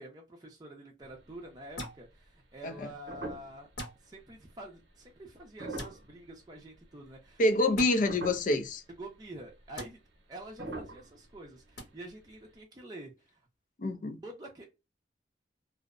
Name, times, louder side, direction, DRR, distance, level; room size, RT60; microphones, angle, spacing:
voice 1, 0.0-3.7 4.0-7.7 9.0-10.0 10.3-13.4 14.2-14.6, right 1 dB, 20° right, 0.5 m, -47 dB
sound 1, 1.0-1.7 2.2-2.3 2.7-3.8 4.2-4.4 5.4-6.8 7.3-7.7 8.0-8.7 9.1-9.2 9.4-9.6 10.5-12.1 12.3-12.4, right 2 dB, 80° right, 0.8 m, -43 dB
sound 2, 1.8-2.0 3.7-4.0 5.7-5.9 7.7-7.9 9.7-9.9 11.8-11.9, equal, 75° left, 1.0 m, -40 dB
voice 2, 7.4-8.8 13.8-14.2, left 2 dB, 45° left, 0.5 m, -27 dB
2.6 x 2.0 x 2.4 m
head